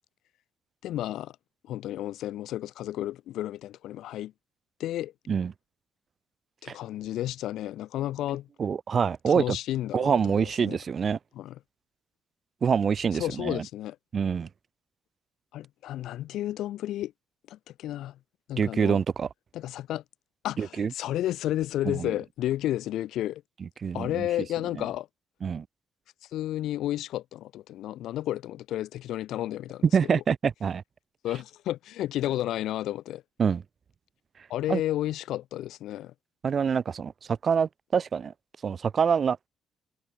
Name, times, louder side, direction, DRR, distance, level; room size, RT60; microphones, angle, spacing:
voice 1, 0.8-1.3 1.7-4.3 4.8-5.1 6.6-8.5 9.3-10.8 11.4-11.6 13.2-14.0 15.5-17.1 17.5-18.2 18.5-19.0 19.5-20.0 20.4-23.4 23.9-25.1 26.3-30.2 31.2-33.2 34.5-36.1, left 13 dB, 80° left, 3.7 m, -32 dB
voice 2, 8.6-9.6 9.9-11.2 12.6-13.6 14.1-14.5 18.6-19.3 20.6-20.9 21.8-22.1 23.8-24.3 25.4-25.6 29.9-30.8 33.4-33.6 34.7-34.8 36.4-37.1 37.4-38.3 38.6-39.4, right 6 dB, 50° right, 0.8 m, -25 dB
cardioid pair, 90°, 0 cm